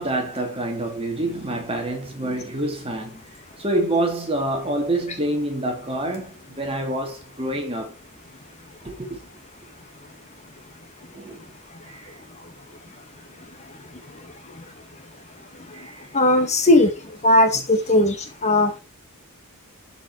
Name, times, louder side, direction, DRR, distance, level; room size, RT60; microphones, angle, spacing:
voice 1, 0.0-3.2 3.6-7.9 8.8-9.2 11.1-11.5 11.9-12.0 15.7-16.0, right 1 dB, 25° right, 2.6 m, -27 dB
voice 2, 16.1-16.9 17.2-18.2 18.4-18.8, left 1 dB, 30° left, 1.7 m, -17 dB
12.5 x 5.6 x 4.5 m
head